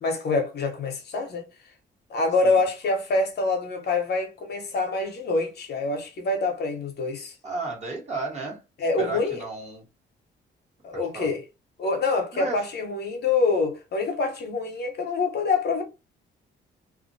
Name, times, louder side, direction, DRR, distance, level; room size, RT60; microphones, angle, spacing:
voice 1, 0.0-1.5 2.1-7.3 8.8-9.4 10.8-11.4 11.8-15.8, left 3 dB, 55° left, 0.8 m, -26 dB
voice 2, 7.4-8.6 9.0-9.8 10.9-11.3 12.3-12.7, right 3 dB, 35° right, 1.2 m, -33 dB
2.4 x 2.1 x 2.6 m
cardioid pair, 90°, 20 cm